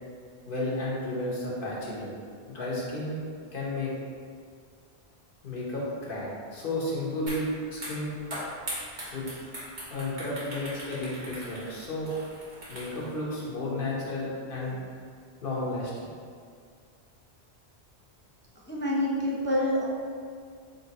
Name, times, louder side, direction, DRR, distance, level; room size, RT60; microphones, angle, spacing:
voice 1, 0.5-3.2 3.5-3.9 5.4-8.1 9.1-9.2 9.9-12.1 12.7-14.8 15.4-16.1, left 1 dB, 55° left, -6 dB, 1.2 m, -33 dB
sound 1, 7.3-7.4 7.7-13.1, right 1 dB, 45° right, 1.4 m, -39 dB
voice 2, 18.7-19.9, left 1 dB, 15° left, -5 dB, 0.3 m, -27 dB
4.1 x 3.2 x 4.1 m, 2.1 s
omnidirectional pair, 1.1 m